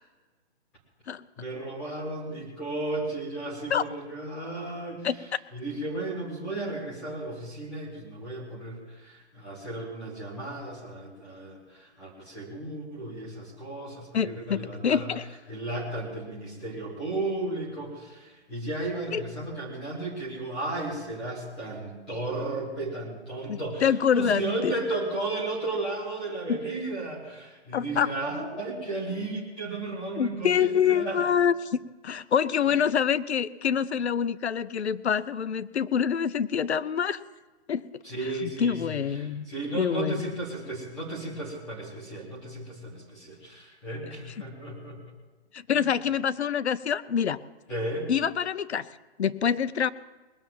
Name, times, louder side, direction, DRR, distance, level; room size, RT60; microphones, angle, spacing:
voice 1, 1.4-5.1 5.5-15.1 15.5-31.2 38.0-45.0 45.7-45.9 47.7-48.1, right 2 dB, ahead, -7 dB, 0.5 m, -34 dB
voice 2, 14.1-15.2 19.1-19.2 23.5-24.7 26.5-26.6 27.7-28.1 30.2-37.2 37.7-39.5 39.8-40.3 45.5-47.4 48.1-48.9 49.2-49.9, left 8 dB, 75° left, 16 dB, 0.7 m, -26 dB
20.0 x 7.0 x 7.6 m, 1.2 s
hypercardioid pair, 160°, 34 cm